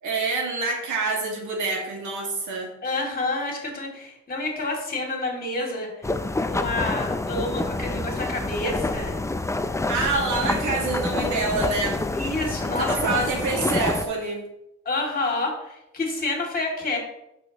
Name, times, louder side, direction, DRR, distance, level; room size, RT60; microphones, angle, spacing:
voice 1, 0.0-2.7 9.9-12.0 12.8-14.4, right 3 dB, 75° right, 0 dB, 2.3 m, -26 dB
voice 2, 2.8-5.9 6.5-9.2 12.1-13.2 13.5-13.6 14.8-17.0, left 2 dB, 30° left, 0 dB, 2.8 m, -29 dB
sound 1, 6.0-14.0, left 2 dB, 10° left, 0.5 m, -27 dB
8.3 x 6.6 x 3.1 m, 0.82 s
cardioid pair, 90°, 30 cm